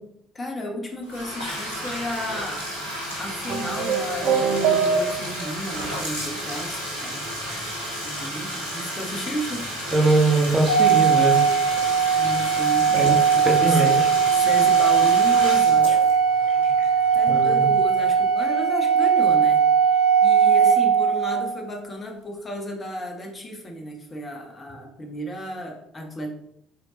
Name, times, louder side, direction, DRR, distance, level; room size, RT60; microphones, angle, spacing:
voice 1, 0.3-2.6 3.2-7.3 8.0-9.7 12.1-16.0 17.1-19.6 20.2-26.3, equal, 30° left, 2 dB, 1.7 m, -33 dB
Bathtub (filling or washing), 1.0-17.8, equal, 90° right, 1.7 m, -32 dB
sound 1, 3.5-5.5, right 5 dB, 60° right, 0.7 m, -23 dB
voice 2, 9.9-11.4 12.9-13.2 13.5-14.1 17.3-17.7, right 2 dB, 30° right, 1 dB, 1.8 m, -21 dB
Organ, 10.7-21.5, right 7 dB, 75° left, 0.5 m, -19 dB
6.8 x 4.5 x 4.0 m, 0.76 s
figure-of-eight pair, 55°, 0 cm